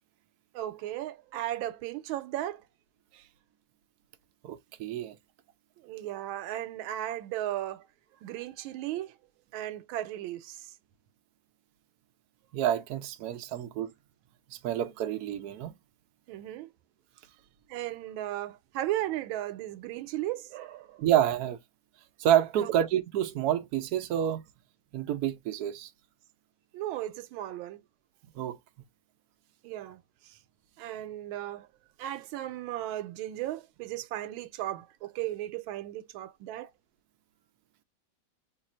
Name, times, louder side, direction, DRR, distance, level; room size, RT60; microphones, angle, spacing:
voice 1, 0.5-2.6 3.1-3.2 5.8-7.9 8.2-9.1 9.5-10.7 16.3-16.7 17.7-21.1 22.6-22.7 26.7-27.8 29.6-30.4 30.8-31.7 32.0-36.7, right 14 dB, 85° right, 1.4 m, -36 dB
voice 2, 4.4-5.1 12.5-13.9 14.5-15.7 21.0-21.6 22.2-24.4 24.9-25.9 28.3-28.6, right 11 dB, 65° right, 1.0 m, -28 dB
3.3 x 2.4 x 4.1 m
omnidirectional pair, 2.1 m